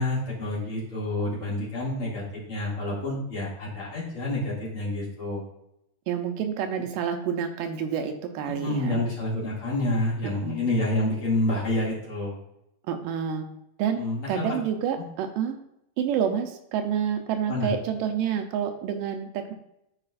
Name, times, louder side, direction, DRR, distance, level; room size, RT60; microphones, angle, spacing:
voice 1, 0.0-5.4 8.5-12.4 13.9-14.6 14.9-15.0 17.5-17.7, left 1 dB, 40° left, -7 dB, 3.0 m, -28 dB
voice 2, 6.1-9.1 10.4-10.7 12.9-13.4 13.8-14.0 14.3-15.6 16.0-19.5, right 8 dB, 85° right, 6 dB, 2.4 m, -28 dB
14.0 x 4.9 x 2.5 m, 0.81 s
omnidirectional pair, 3.8 m